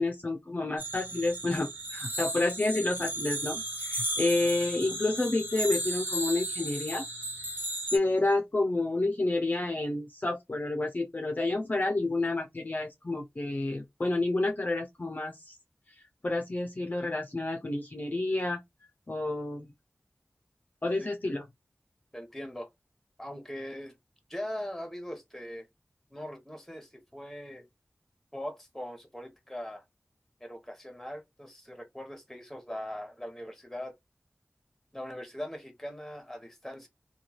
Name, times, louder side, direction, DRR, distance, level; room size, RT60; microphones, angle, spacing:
voice 1, 0.0-7.0 7.9-15.6 16.2-18.6 19.1-19.7 20.8-21.5, left 2 dB, 40° left, 0.5 m, -29 dB
sound 1, 0.8-8.0, right 1 dB, 50° right, 1.1 m, -35 dB
voice 2, 22.1-22.7 23.2-23.9 24.3-25.7 26.1-27.7 28.3-29.8 30.4-33.9 34.9-36.9, equal, 5° left, 0.9 m, -40 dB
3.0 x 2.2 x 2.3 m
wide cardioid pair, 70°, 4 cm